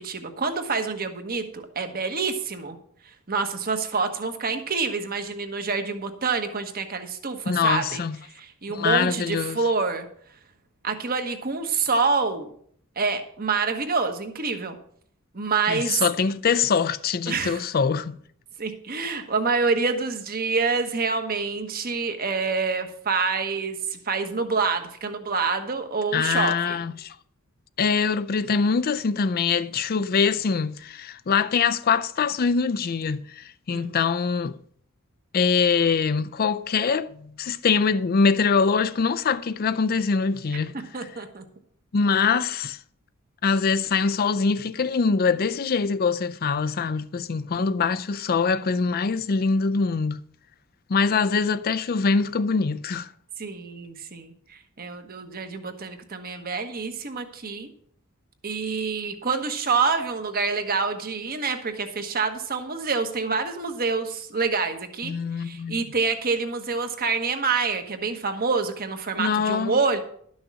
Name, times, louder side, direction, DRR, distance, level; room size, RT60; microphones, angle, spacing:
voice 1, 0.0-2.8 3.0-8.0 8.3-10.1 10.8-12.5 13.0-14.8 15.3-16.0 17.3-17.6 18.6-26.8 33.7-33.9 40.5-41.4 47.5-47.8 53.4-57.7 58.4-70.0, right 4 dB, 45° right, 1.2 m, -27 dB
voice 2, 7.5-8.2 8.7-9.6 15.7-18.2 26.1-27.2 27.8-34.6 35.3-41.1 41.9-42.8 43.4-50.2 50.9-53.1 65.0-65.8 69.2-69.8, left 5 dB, 45° left, 0.4 m, -23 dB
12.0 x 6.3 x 6.1 m
head